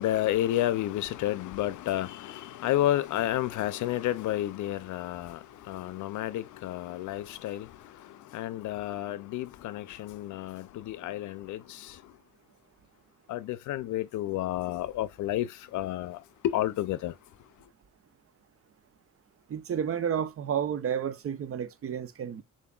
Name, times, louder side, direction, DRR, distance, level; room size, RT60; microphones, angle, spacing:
voice 1, 0.0-5.4 5.7-7.7 8.3-11.6 13.3-15.5 15.7-16.2 16.5-17.1, left 13 dB, 75° left, 0.5 m, -30 dB
voice 2, 19.5-22.4, right 8 dB, 50° right, 0.7 m, -31 dB
6.8 x 2.6 x 2.3 m
cardioid pair, 90°, 30 cm